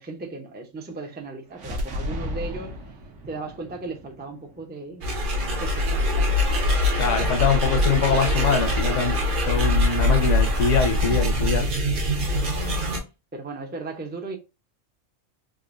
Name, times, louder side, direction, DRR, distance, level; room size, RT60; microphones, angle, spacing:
voice 1, 0.0-2.7 3.3-5.1 5.6-6.3 12.2-12.5 13.3-14.4, right 3 dB, 15° right, 0.4 m, -36 dB
sound 1, 1.5-5.4, left 1 dB, 70° right, 1.2 m, -35 dB
sound 2, 5.0-13.0, left 1 dB, 45° right, 0.9 m, -23 dB
voice 2, 7.0-9.2 9.5-11.7, left 5 dB, 70° left, 1.1 m, -23 dB
3.7 x 2.6 x 2.5 m
omnidirectional pair, 1.3 m